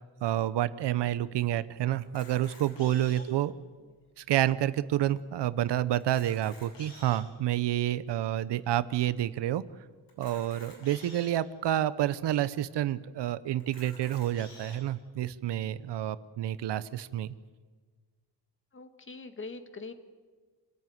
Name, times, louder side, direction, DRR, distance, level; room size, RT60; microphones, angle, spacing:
voice 1, 0.0-3.5 4.2-9.6 10.2-17.3, right 12 dB, 75° right, 16 dB, 0.9 m, -29 dB
Camera, 2.0-3.4 4.1-4.2 4.4-4.5 5.1-5.2 6.0-7.3 8.0-8.1 10.1-11.3 12.0-12.1 12.4-12.5 13.6-14.8, left 2 dB, 75° left, 7.9 m, -51 dB
voice 2, 18.7-19.9, left 3 dB, 30° left, 9 dB, 1.8 m, -43 dB
27.0 x 14.0 x 9.4 m, 1.5 s
cardioid pair, 130°, 42 cm